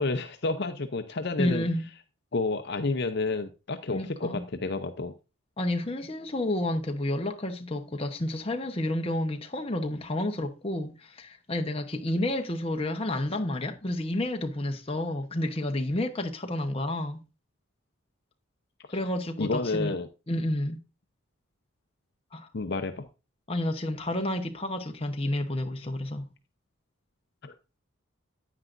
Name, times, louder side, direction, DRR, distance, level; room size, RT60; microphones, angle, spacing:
voice 1, 0.0-1.6 2.3-5.1 18.9-19.0 19.4-20.1 22.5-23.1 27.4-27.5, left 3 dB, 50° left, 0.6 m, -30 dB
voice 2, 1.4-1.8 3.9-4.4 5.6-17.2 18.9-19.9 20.3-20.8 22.3-22.5 23.5-26.3, left 1 dB, 25° left, 0.9 m, -30 dB
9.6 x 9.1 x 2.5 m
head